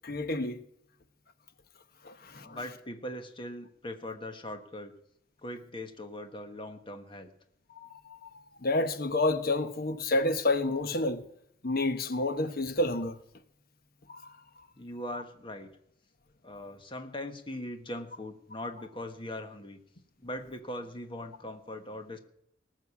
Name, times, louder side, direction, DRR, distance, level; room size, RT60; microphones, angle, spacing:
voice 1, 0.0-0.6 2.0-2.6 7.7-8.3 8.6-11.3 11.6-13.2 14.1-14.2, left 2 dB, 50° left, 1.1 m, -29 dB
voice 2, 2.4-4.9 5.4-7.3 14.8-15.7 16.4-19.8 20.2-22.2, left 1 dB, 25° left, 1.4 m, -40 dB
19.5 x 6.6 x 8.5 m
head